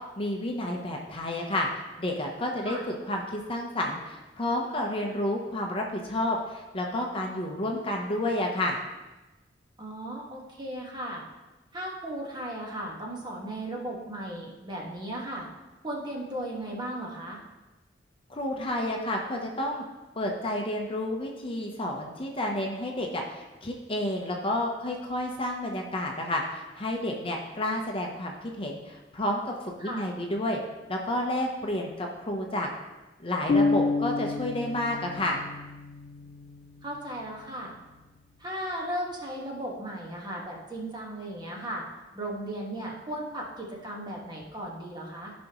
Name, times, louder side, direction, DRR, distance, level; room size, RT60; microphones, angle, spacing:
voice 1, 0.2-1.7 2.0-8.8 18.3-19.8 20.2-30.6 30.9-32.7 33.2-35.4, left 1 dB, 30° left, 1 dB, 0.8 m, -30 dB
voice 2, 9.8-11.2 11.7-15.5 15.8-17.4 29.8-30.1 36.8-37.7 38.4-41.8 42.1-45.3, right 1 dB, 25° right, -2 dB, 1.5 m, -36 dB
sound 1, 33.5-37.3, left 3 dB, 50° left, 0.4 m, -29 dB
14.5 x 5.3 x 3.0 m, 1.1 s
head